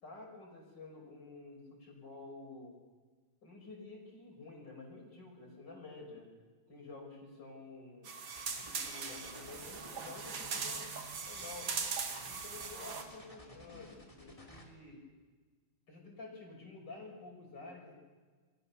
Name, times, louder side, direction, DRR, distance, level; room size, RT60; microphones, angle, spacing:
voice 1, 0.0-2.8 3.4-6.3 6.7-8.1 8.6-10.9 11.3-11.7 12.3-15.0 15.9-17.9, left 3 dB, 55° left, 1 dB, 6.2 m, -50 dB
sound 1, 8.1-13.0, right 5 dB, 65° right, 2.8 m, -40 dB
sound 2, 8.3-14.6, left 1 dB, 15° left, 3.2 m, -54 dB
28.5 x 22.5 x 7.0 m, 1.4 s
omnidirectional pair, 2.3 m